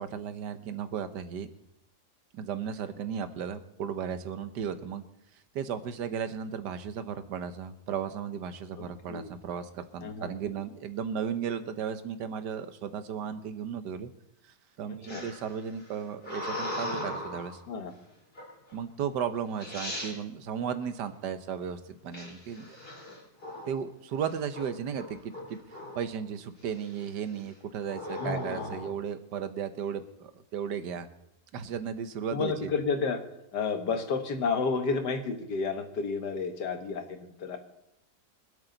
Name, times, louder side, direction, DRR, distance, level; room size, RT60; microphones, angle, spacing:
voice 1, 0.0-1.5 2.3-5.0 5.3-14.1 14.4-17.6 18.7-22.8 23.7-31.1 31.5-32.7, right 7 dB, 90° right, 11 dB, 1.6 m, -35 dB
voice 2, 8.8-9.3 10.0-10.3 14.9-15.2 17.7-17.9 28.2-28.8 32.3-33.2 33.5-37.6, left 4 dB, 85° left, 7 dB, 2.0 m, -31 dB
sound 1, 15.1-17.6 18.3-18.7 19.3-19.4 19.6-20.1 22.1-23.8 24.2-24.6 24.9-26.1 26.6-27.0 27.8-28.9, left 1 dB, 35° left, 3.9 m, -38 dB
25.0 x 8.5 x 4.0 m, 0.83 s
omnidirectional pair, 1.8 m